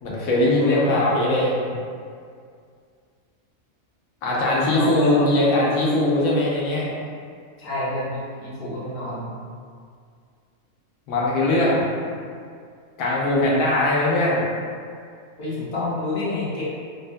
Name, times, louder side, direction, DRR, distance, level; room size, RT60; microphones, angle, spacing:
voice 1, 0.0-1.5 4.2-6.9 11.1-12.1 13.0-14.5, left 1 dB, 80° left, -5 dB, 1.0 m, -20 dB
voice 2, 0.5-1.4 4.7-5.4 7.6-9.3 15.4-16.6, left 1 dB, 55° left, -8 dB, 0.8 m, -28 dB
2.9 x 2.1 x 2.5 m, 2.2 s
omnidirectional pair, 1.5 m